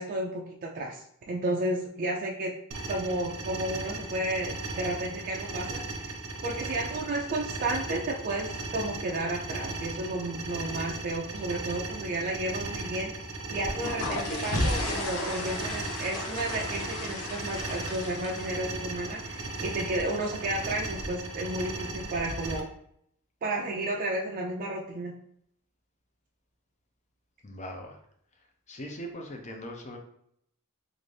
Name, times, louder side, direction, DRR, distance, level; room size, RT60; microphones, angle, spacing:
voice 1, 0.0-2.5 2.9-6.1 6.4-22.7 23.4-25.1, right 1 dB, 40° right, -1 dB, 0.4 m, -32 dB
sound 1, 2.7-22.6, right 3 dB, 85° right, 0.7 m, -37 dB
sound 2, 13.5-22.6, left 1 dB, 85° left, 0.8 m, -35 dB
voice 2, 27.4-28.0 28.4-30.0, equal, 30° left, 3 dB, 0.6 m, -41 dB
3.9 x 2.5 x 3.2 m, 0.69 s
head